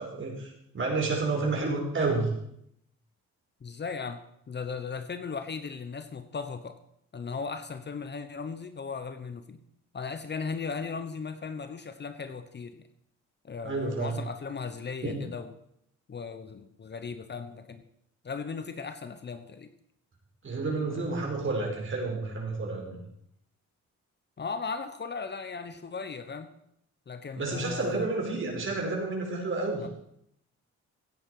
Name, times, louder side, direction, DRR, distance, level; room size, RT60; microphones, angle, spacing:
voice 1, 0.0-2.3 13.6-14.2 15.0-15.2 20.4-22.9 27.4-29.9, right 3 dB, 40° right, 0 dB, 5.2 m, -30 dB
voice 2, 3.6-6.8 7.1-9.6 9.9-12.9 13.4-15.6 16.1-17.8 18.2-19.7 20.9-21.2 24.4-26.5 27.1-28.0 29.8-29.9, left 5 dB, 35° left, 10 dB, 1.1 m, -37 dB
16.0 x 10.0 x 5.0 m, 0.74 s
cardioid pair, 90°, 30 cm